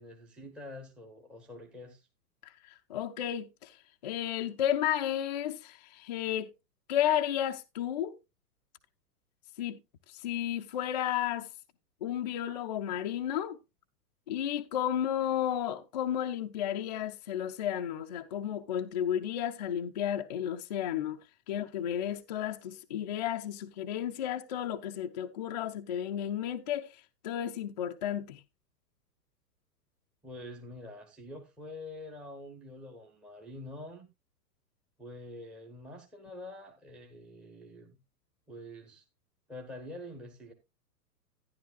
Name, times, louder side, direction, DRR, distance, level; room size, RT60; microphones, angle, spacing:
voice 1, 0.0-2.1 30.2-34.1 35.0-38.0 38.5-39.1 39.5-40.5, left 1 dB, ahead, 0.7 m, -46 dB
voice 2, 2.4-3.8 4.0-6.5 6.9-8.2 9.6-9.8 10.1-11.5 12.0-13.6 14.3-21.2 21.5-28.4, left 10 dB, 30° left, 0.4 m, -33 dB
12.0 x 10.5 x 2.3 m
figure-of-eight pair, 105°, 48 cm